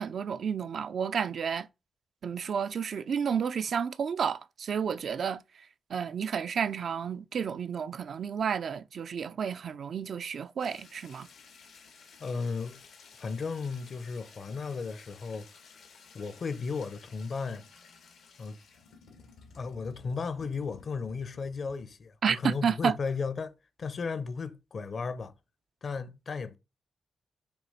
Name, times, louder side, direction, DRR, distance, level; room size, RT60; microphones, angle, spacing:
voice 1, 0.0-1.7 2.2-11.3 22.2-23.0, right 7 dB, 70° right, 0.5 m, -31 dB
sound 1, 10.6-22.0, left 5 dB, 90° left, 1.9 m, -55 dB
voice 2, 12.2-12.8 13.2-15.5 16.1-17.6 18.4-18.6 19.5-23.5 23.8-25.3 25.8-26.6, left 4 dB, 55° left, 0.9 m, -35 dB
6.9 x 2.9 x 5.6 m
cardioid pair, 70°, 0 cm